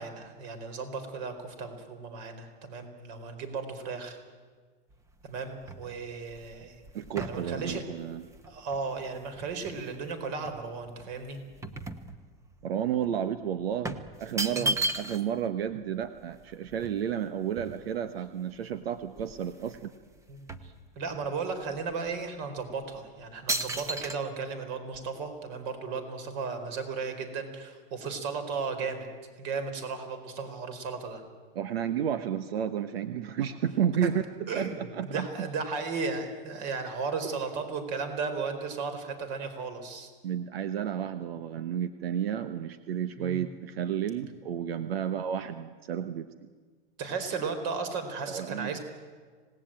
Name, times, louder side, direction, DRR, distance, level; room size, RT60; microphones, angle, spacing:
voice 1, 0.0-4.2 5.2-6.8 7.2-7.9 8.4-11.4 14.5-14.7 20.3-29.1 29.4-31.2 34.5-40.1 43.2-43.4 47.0-48.8, right 4 dB, 45° right, 8 dB, 4.4 m, -35 dB
sound 1, 4.9-10.0 10.5-12.6 12.9-13.1 13.8-15.4 15.7-15.8 16.0-18.2 18.7-18.8 19.1-19.9 20.1-21.4 21.9-22.1 22.7-23.0 23.5-24.2, right 2 dB, 10° right, 0.9 m, -36 dB
voice 2, 6.9-8.3 12.6-19.9 31.5-35.5 40.2-46.5 48.3-48.8, right 9 dB, 90° right, 11 dB, 1.2 m, -32 dB
26.0 x 18.5 x 8.9 m, 1.5 s
supercardioid pair, 150°, 29 cm